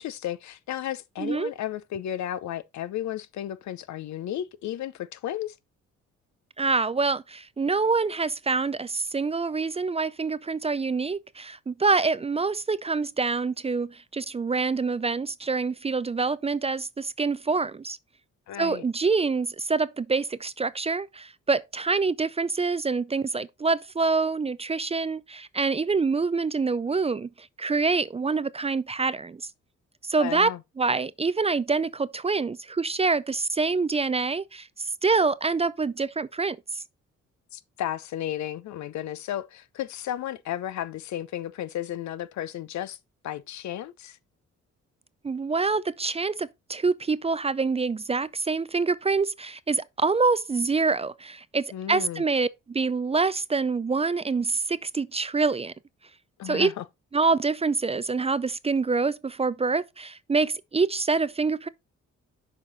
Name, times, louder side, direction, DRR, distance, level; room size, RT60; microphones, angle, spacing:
voice 1, 0.0-5.6 18.5-18.8 30.2-30.6 37.5-43.0 43.2-44.2 51.7-52.2 56.4-56.8, left 11 dB, 70° left, 0.7 m, -33 dB
voice 2, 1.2-1.5 6.6-18.0 18.6-29.4 30.0-30.5 30.8-36.8 45.2-55.7 56.4-56.7 57.1-61.7, right 4 dB, 20° right, 0.4 m, -26 dB
6.7 x 5.0 x 3.9 m
supercardioid pair, 65°, 29 cm